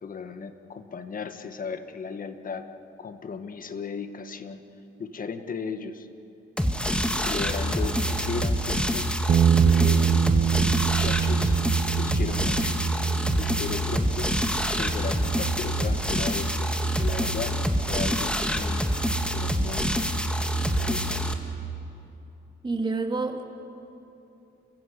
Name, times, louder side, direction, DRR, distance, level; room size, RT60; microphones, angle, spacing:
voice 1, 0.0-2.7 3.0-4.6 5.0-6.1 7.2-9.2 9.6-10.1 10.8-11.6 11.9-12.8 13.4-14.3 14.8-17.6 17.9-18.9 19.3-19.9 20.6-21.3, left 5 dB, 45° left, 9 dB, 1.5 m, -36 dB
sound 1, 6.6-21.3, equal, 5° left, 1.8 m, -26 dB
Bass guitar, 9.3-15.5, right 8 dB, 45° right, 0.5 m, -25 dB
voice 2, 22.6-23.4, right 3 dB, 25° right, 3 dB, 2.6 m, -28 dB
30.0 x 15.0 x 8.2 m, 2.9 s
cardioid pair, 90°, 20 cm